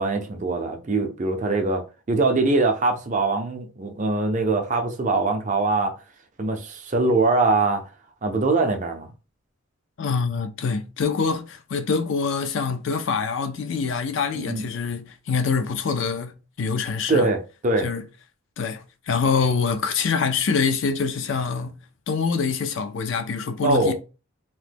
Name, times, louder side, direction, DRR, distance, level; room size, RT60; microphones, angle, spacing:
voice 1, 0.0-5.9 6.4-7.8 8.2-9.1 14.3-14.7 17.1-17.9 23.6-23.9, right 3 dB, 35° right, 0.5 m, -22 dB
voice 2, 10.0-17.3 17.8-18.0 18.6-21.8 22.1-23.9, left 5 dB, 55° left, 0.4 m, -25 dB
2.9 x 2.1 x 3.3 m
head